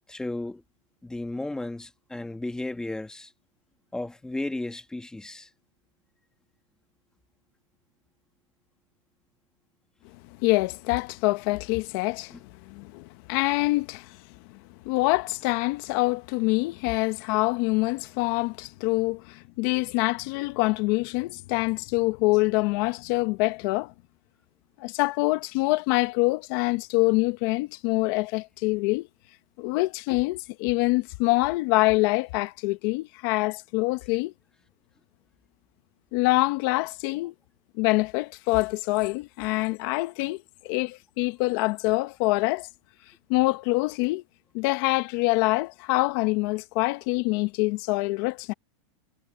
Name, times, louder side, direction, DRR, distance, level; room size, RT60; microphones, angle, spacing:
voice 1, 0.1-0.6 1.0-3.3 3.9-5.5 12.3-12.4, left 2 dB, 5° left, 1.4 m, -34 dB
voice 2, 10.4-12.4 12.7-14.2 14.8-23.9 24.8-29.1 29.6-34.3 36.1-37.3 37.8-42.7 43.3-44.2 44.5-48.5, left 23 dB, 45° left, 0.9 m, -25 dB
supercardioid pair, 165°, 17 cm